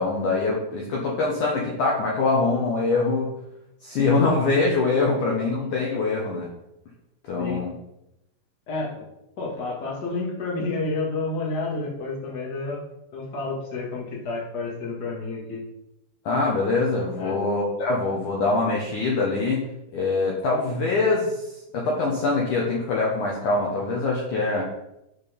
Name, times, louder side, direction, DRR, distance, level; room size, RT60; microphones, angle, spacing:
voice 1, 0.0-3.3 3.8-6.5 7.3-7.7 16.3-19.6 19.9-21.4 21.7-24.6, left 3 dB, 75° left, -3 dB, 1.9 m, -23 dB
voice 2, 8.7-9.0 9.4-12.8 13.1-15.6 17.1-17.4, left 3 dB, 40° left, -4 dB, 1.4 m, -30 dB
9.7 x 4.5 x 5.2 m, 0.87 s
omnidirectional pair, 5.2 m